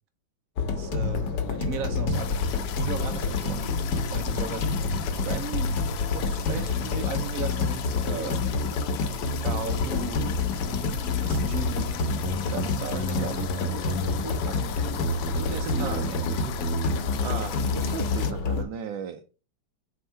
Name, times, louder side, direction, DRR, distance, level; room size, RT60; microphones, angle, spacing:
sound 1, 0.6-18.6, left 3 dB, 65° left, 1.4 m, -28 dB
voice 1, 0.7-5.8 6.1-8.4 9.3-10.4 11.1-14.8 15.3-16.7, right 5 dB, 55° right, 1.1 m, -37 dB
sound 2, 2.1-18.3, left 9 dB, 80° left, 1.4 m, -38 dB
voice 2, 17.2-19.4, right 8 dB, 80° right, 1.3 m, -36 dB
4.7 x 3.6 x 5.6 m
omnidirectional pair, 2.1 m